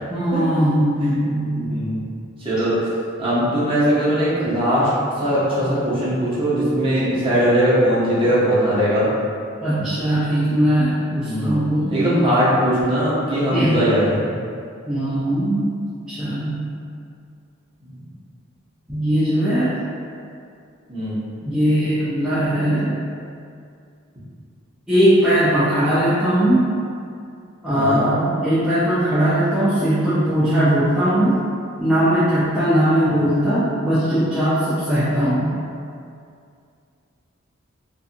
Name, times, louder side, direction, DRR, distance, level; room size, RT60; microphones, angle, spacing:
voice 1, 0.1-1.9 9.6-12.0 13.5-13.8 14.9-15.7 16.1-16.6 18.9-19.8 21.4-23.0 24.9-26.7 27.6-31.4 31.8-35.5, equal, 5° right, -14 dB, 0.4 m, -19 dB
voice 2, 1.5-2.0 2.4-2.7 3.2-4.9 5.2-9.1 11.2-11.6 11.9-14.2 20.9-21.2 27.7-28.0, equal, 25° right, -10 dB, 0.7 m, -20 dB
2.6 x 2.5 x 2.5 m, 2.4 s
head